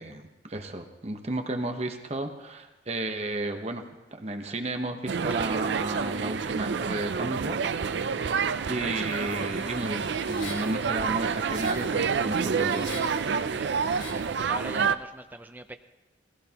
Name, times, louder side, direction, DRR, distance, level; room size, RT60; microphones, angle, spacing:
voice 1, 0.0-3.8 4.1-7.6 8.7-12.9, right 2 dB, 35° right, 5 dB, 0.9 m, -33 dB
sound 1, 5.1-15.0, right 6 dB, 70° right, 0.4 m, -28 dB
sound 2, 9.0-14.3, left 2 dB, 80° left, 3.0 m, -45 dB
voice 2, 13.4-15.7, right 1 dB, 10° right, 7 dB, 0.6 m, -43 dB
19.0 x 16.0 x 2.9 m, 1.0 s
head